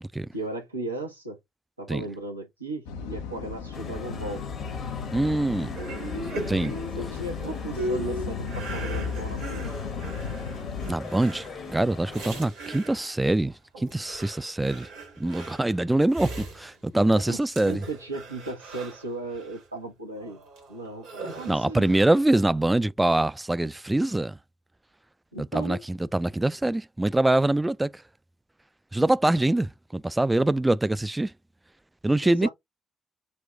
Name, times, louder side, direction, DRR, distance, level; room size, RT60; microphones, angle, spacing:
voice 1, 0.3-1.4 1.8-4.4 7.0-10.0 17.2-17.4 17.6-20.4 20.7-21.9 25.3-25.8 32.2-32.5, right 2 dB, 90° right, 0.7 m, -36 dB
sound 1, 2.9-10.9, left 6 dB, 75° left, 0.5 m, -35 dB
sound 2, 3.7-12.4, left 4 dB, 55° left, 1.0 m, -41 dB
voice 2, 5.1-5.7 6.5-6.8 10.9-11.5 11.7-14.9 15.2-17.8 21.5-24.4 25.4-28.0 28.9-31.3 32.0-32.5, right 1 dB, 15° right, 0.3 m, -24 dB
sound 3, 5.8-13.3 13.7-17.3 17.6-19.6 20.2-22.3, right 2 dB, 70° right, 1.3 m, -39 dB
4.2 x 2.2 x 3.6 m
figure-of-eight pair, 40°, 0 cm